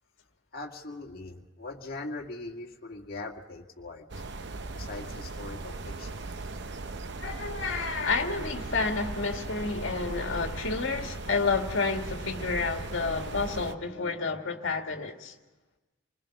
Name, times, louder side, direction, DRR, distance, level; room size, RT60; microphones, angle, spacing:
voice 1, 0.5-4.2 4.7-6.3, left 2 dB, 45° left, 2.0 m, -41 dB
sound 1, 4.1-13.8, right 3 dB, 55° right, 0.8 m, -38 dB
voice 2, 7.2-15.3, left 4 dB, 65° left, 2.0 m, -30 dB
27.5 x 20.5 x 6.0 m
head